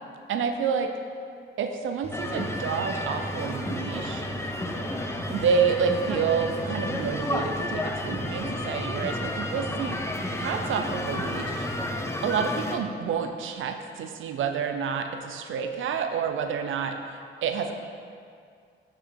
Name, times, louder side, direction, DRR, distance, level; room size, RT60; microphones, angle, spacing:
voice 1, 0.3-0.9 1.6-4.2 5.3-10.0 10.3-11.7 12.2-17.0 17.4-17.7, right 6 dB, 90° right, 6 dB, 0.6 m, -28 dB
Engine, 2.0-12.0, right 3 dB, 30° right, 0.6 m, -40 dB
sound 1, 2.1-12.8, left 1 dB, 15° left, 0.6 m, -32 dB
sound 2, 4.0-11.9, left 2 dB, 45° left, 1.0 m, -45 dB
6.6 x 6.1 x 4.7 m, 2.2 s
cardioid pair, 100°, 20 cm